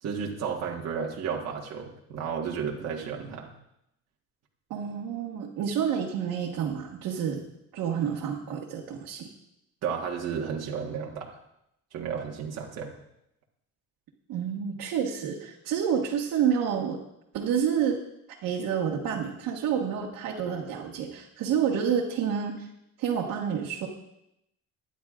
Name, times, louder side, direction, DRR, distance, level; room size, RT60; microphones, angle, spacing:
voice 1, 0.0-3.5 9.8-11.4 11.9-12.9, right 6 dB, 50° right, -2 dB, 1.5 m, -33 dB
voice 2, 4.7-7.4 7.7-9.3 14.3-17.0 17.3-18.0 18.4-22.7 23.0-23.9, right 8 dB, 75° right, -3 dB, 1.6 m, -29 dB
22.5 x 10.0 x 2.5 m, 0.80 s
cardioid pair, 155°, 32 cm